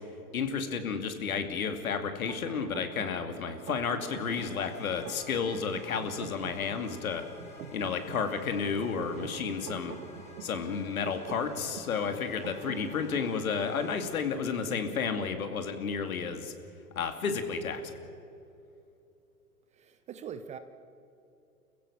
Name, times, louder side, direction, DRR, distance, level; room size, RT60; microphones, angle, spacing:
voice 1, 0.3-7.2 7.7-9.9 10.4-16.5 17.0-18.0, left 6 dB, 65° left, 7 dB, 2.6 m, -32 dB
sound 1, 2.3-13.4, right 7 dB, 65° right, 1.7 m, -47 dB
sound 2, 4.1-14.2, left 2 dB, 15° left, 4.6 m, -52 dB
voice 2, 19.7-20.6, right 8 dB, 15° right, 11 dB, 0.7 m, -42 dB
29.5 x 15.5 x 7.2 m, 2.7 s
figure-of-eight pair, 110°, 45 cm